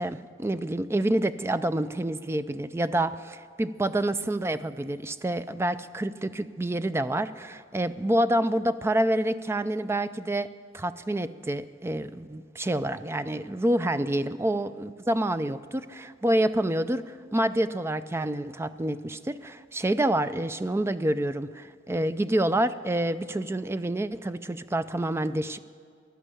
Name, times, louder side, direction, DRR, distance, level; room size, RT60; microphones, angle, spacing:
voice 1, 0.0-25.6, right 1 dB, 15° right, 12 dB, 0.4 m, -28 dB
14.5 x 11.5 x 8.4 m, 2.2 s
head